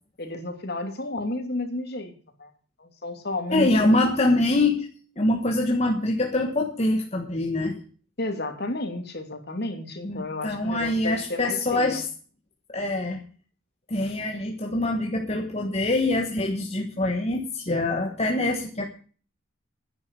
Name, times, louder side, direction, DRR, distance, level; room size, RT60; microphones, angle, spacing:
voice 1, 0.2-2.1 2.4-2.5 2.8-4.1 8.2-12.0, left 2 dB, 50° left, 5 dB, 2.7 m, -32 dB
voice 2, 3.5-4.9 5.2-7.8 10.0-12.1 12.7-13.2 13.9-18.9, left 2 dB, 30° left, 2 dB, 1.4 m, -24 dB
10.5 x 9.7 x 8.3 m, 0.42 s
head